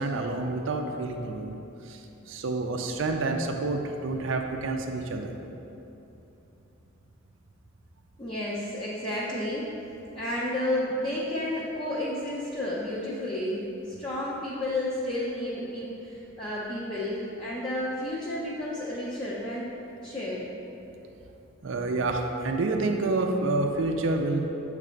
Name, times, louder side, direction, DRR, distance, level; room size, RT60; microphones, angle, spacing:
voice 1, 0.0-1.6 1.8-5.3 21.6-24.5, right 2 dB, 65° right, 3 dB, 0.4 m, -28 dB
voice 2, 8.2-9.7 10.1-19.7 20.0-20.5, left 1 dB, 25° left, -8 dB, 0.6 m, -31 dB
7.3 x 3.3 x 5.1 m, 2.9 s
head